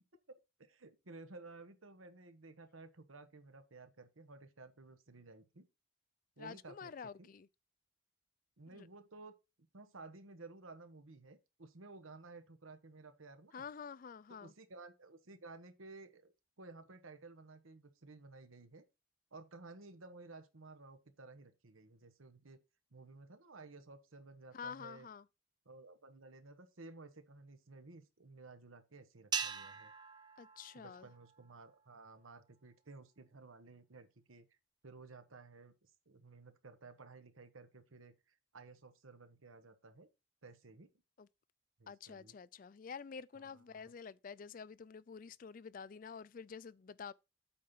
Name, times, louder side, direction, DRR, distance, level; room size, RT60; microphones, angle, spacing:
voice 1, 0.3-5.7 6.4-7.3 8.6-9.4 9.7-13.6 14.3-16.3 16.6-18.8 19.3-22.6 22.9-25.1 25.6-29.9 30.7-34.5 34.8-40.1 40.4-40.9 41.8-42.3 43.3-43.9, right 3 dB, 85° right, 1.2 m, -55 dB
voice 2, 6.4-7.5 8.7-8.9 13.5-14.5 24.5-25.2 30.4-31.1 41.2-41.3 41.9-47.1, left 6 dB, 40° left, 0.3 m, -49 dB
sound 1, 29.3-31.8, right 6 dB, 20° right, 0.6 m, -42 dB
8.6 x 4.3 x 5.5 m
head